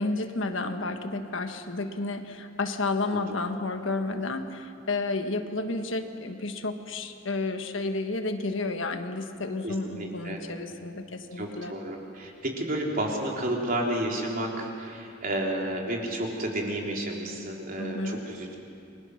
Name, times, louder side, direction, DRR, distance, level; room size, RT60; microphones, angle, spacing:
voice 1, 0.0-11.7 17.8-18.2, left 3 dB, 70° left, 6 dB, 1.5 m, -31 dB
voice 2, 9.6-10.4 11.4-18.6, right 1 dB, 45° right, -1 dB, 3.6 m, -31 dB
29.0 x 22.0 x 6.4 m, 2.5 s
head